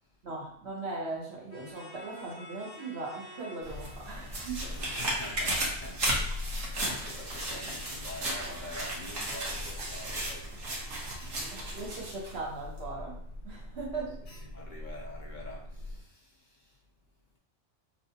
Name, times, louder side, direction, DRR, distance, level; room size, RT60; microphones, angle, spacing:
voice 1, 0.2-4.7 11.5-14.2, right 3 dB, 65° right, -3 dB, 1.3 m, -39 dB
sound 1, 1.5-6.1, equal, 30° left, 1.4 m, -50 dB
Alarm, 3.6-16.0, left 1 dB, 70° left, 1.1 m, -43 dB
sound 2, 3.6-12.4 12.8-12.9, right 1 dB, 90° right, 1.4 m, -35 dB
voice 2, 4.9-10.5 14.5-16.8, left 2 dB, 50° left, -2 dB, 0.7 m, -46 dB
5.8 x 2.3 x 2.8 m, 0.68 s
omnidirectional pair, 1.2 m